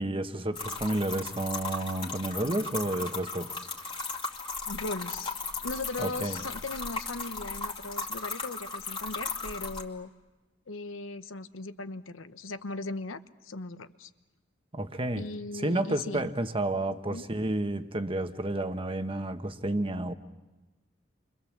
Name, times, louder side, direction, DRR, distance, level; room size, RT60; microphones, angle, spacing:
voice 1, 0.0-3.5 6.0-6.4 14.7-15.2 15.5-20.1, right 1 dB, 30° right, 8 dB, 1.2 m, -31 dB
sound 1, 0.5-9.8, left 3 dB, 25° left, 2.5 m, -36 dB
voice 2, 4.7-5.4 5.6-10.1 10.7-14.1 15.2-16.3 16.9-17.2, left 2 dB, 90° left, 11 dB, 1.0 m, -38 dB
29.5 x 25.0 x 7.4 m, 1.1 s
head